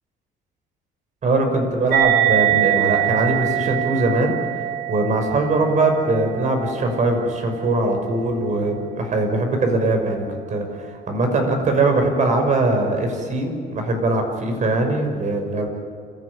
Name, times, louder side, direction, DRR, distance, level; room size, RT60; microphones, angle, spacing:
voice 1, 1.2-4.3 4.9-15.7, right 2 dB, 45° right, 5 dB, 6.1 m, -21 dB
sound 1, 1.9-8.8, right 14 dB, 70° right, 6.9 m, -24 dB
28.0 x 15.5 x 10.0 m, 2.2 s
cardioid pair, 110°, 17 cm